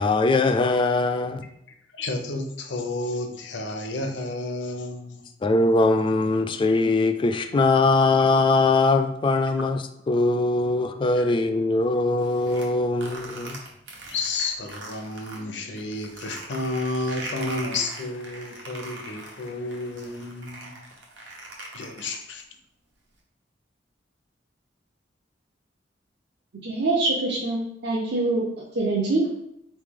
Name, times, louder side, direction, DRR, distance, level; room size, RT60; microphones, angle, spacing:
voice 1, 0.0-1.4 5.4-13.6, left 3 dB, 30° left, 9 dB, 0.3 m, -21 dB
voice 2, 1.9-5.2 11.1-11.3 14.1-20.8 21.7-22.4, left 2 dB, 80° left, 5 dB, 0.6 m, -31 dB
sound 1, 12.2-15.4 15.8-22.4, right 2 dB, 80° right, 1.0 m, -40 dB
voice 3, 26.6-28.4 28.7-29.2, right 2 dB, 65° right, -4 dB, 0.7 m, -24 dB
4.2 x 3.2 x 3.6 m, 0.79 s
head